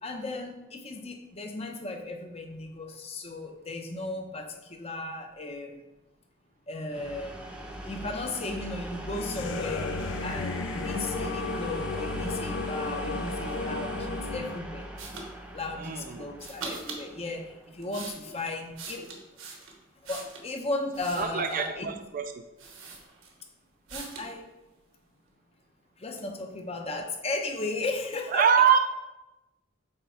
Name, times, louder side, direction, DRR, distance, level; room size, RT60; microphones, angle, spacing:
voice 1, 0.0-5.8 6.7-7.4 7.7-9.9 10.2-14.9 15.5-19.1 20.0-21.9 23.9-24.5 26.0-28.5, left 2 dB, 30° left, 3 dB, 0.7 m, -35 dB
sound 1, 6.9-18.5, right 1 dB, 5° right, 0.6 m, -39 dB
sound 2, 9.1-14.6, left 4 dB, 60° left, 0.3 m, -34 dB
sound 3, 15.0-15.3 16.4-17.0 17.6-20.5 20.9-21.7 22.2-22.3 22.6-23.5 23.9-24.3, right 4 dB, 85° right, 1.3 m, -42 dB
voice 2, 15.8-16.3 21.2-22.3 28.3-28.8, right 7 dB, 40° right, 7 dB, 0.3 m, -24 dB
8.0 x 3.5 x 4.7 m, 1.0 s
head